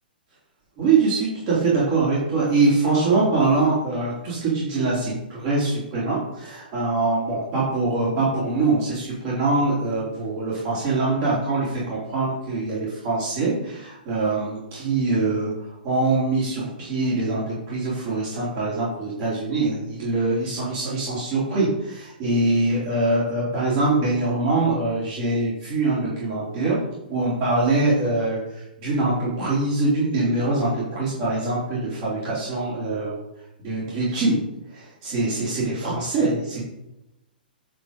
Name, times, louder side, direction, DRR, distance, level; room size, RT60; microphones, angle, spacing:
voice 1, 0.8-26.8 27.1-33.2 33.6-34.5 34.7-36.6, right 3 dB, 35° right, -7 dB, 3.5 m, -23 dB
10.0 x 4.6 x 5.3 m, 0.90 s
figure-of-eight pair, 115°, 5 cm